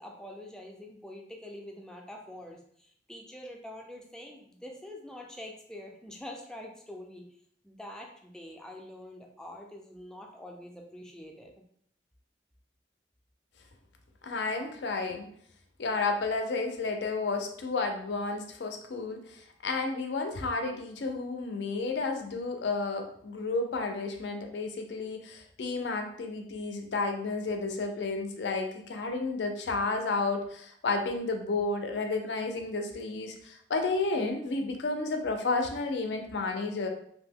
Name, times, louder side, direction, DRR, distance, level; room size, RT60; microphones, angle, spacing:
voice 1, 0.0-7.2 7.6-11.5, left 1 dB, 5° left, 0 dB, 0.3 m, -45 dB
voice 2, 14.2-15.3 15.8-36.9, left 3 dB, 75° left, 4 dB, 0.4 m, -32 dB
2.6 x 2.1 x 3.4 m, 0.65 s
head